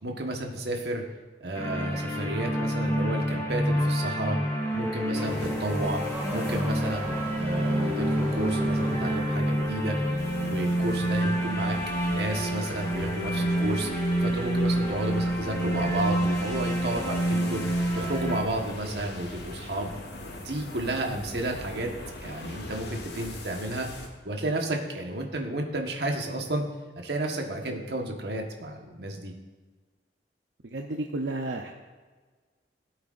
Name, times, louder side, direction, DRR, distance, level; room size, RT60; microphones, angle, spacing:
voice 1, 0.0-1.0 1.4-4.4 4.7-6.0 6.3-10.0 10.4-11.8 12.1-13.9 14.2-17.6 17.9-19.9 20.4-21.9 22.2-23.9 24.2-26.6 27.0-29.3, right 1 dB, 70° right, 2 dB, 1.4 m, -32 dB
sound 1, 1.6-18.4, right 1 dB, 15° left, 2.2 m, -28 dB
Car / Accelerating revving vroom, 4.4-9.4, equal, 15° right, 2.1 m, -37 dB
sound 2, 5.2-24.1, left 2 dB, 75° left, 1.4 m, -42 dB
voice 2, 30.6-31.7, right 2 dB, 90° right, 2 dB, 0.7 m, -32 dB
17.0 x 8.0 x 2.6 m, 1.4 s
head